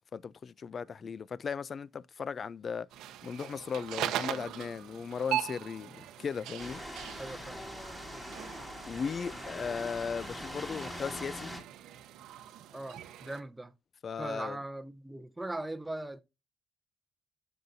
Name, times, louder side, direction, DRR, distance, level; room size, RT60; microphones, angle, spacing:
voice 1, 0.1-2.9 3.2-6.8 8.9-11.5 14.0-14.6, left 6 dB, 45° left, 0.3 m, -37 dB
sound 1, 2.9-13.4, right 12 dB, 90° right, 0.8 m, -40 dB
sound 2, 6.6-11.6, equal, 15° left, 2.4 m, -42 dB
voice 2, 7.2-7.6 12.7-13.7 14.2-16.2, right 2 dB, 10° right, 0.6 m, -39 dB
13.5 x 5.5 x 2.7 m
cardioid pair, 90°, 0 cm